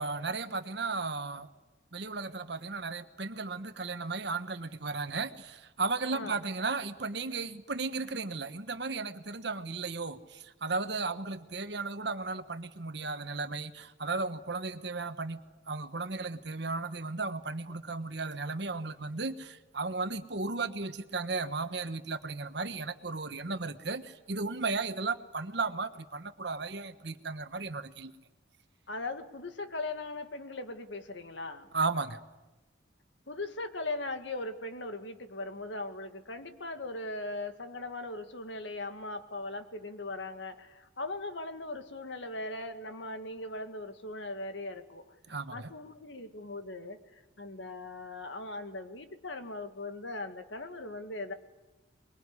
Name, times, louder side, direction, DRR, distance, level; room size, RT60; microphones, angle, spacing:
voice 1, 0.0-1.5 1.9-15.4 15.7-28.1 31.7-32.2 45.3-45.7, right 3 dB, 60° right, 1.3 m, -35 dB
voice 2, 28.9-31.7 33.3-45.2 45.5-51.3, left 2 dB, 70° left, 2.0 m, -39 dB
24.0 x 22.0 x 9.7 m
head